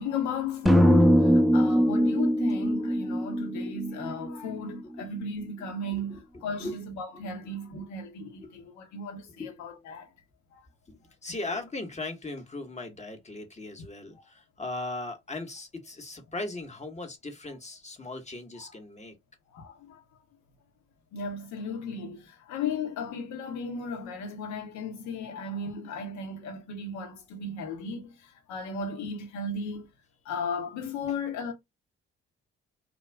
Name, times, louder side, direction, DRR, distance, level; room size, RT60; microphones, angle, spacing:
voice 1, 0.0-10.1 10.5-10.6 14.1-14.3 18.6-18.7 19.5-20.0 21.1-29.9 30.2-31.5, left 3 dB, 70° left, 0.9 m, -35 dB
sound 1, 0.7-4.8, equal, ahead, 0.4 m, -22 dB
voice 2, 7.1-7.5 7.8-7.9 8.2-8.5 9.3-9.9 10.9-19.1 31.1-31.2, left 2 dB, 25° left, 1.0 m, -39 dB
2.4 x 2.2 x 3.3 m
hypercardioid pair, 45°, 30 cm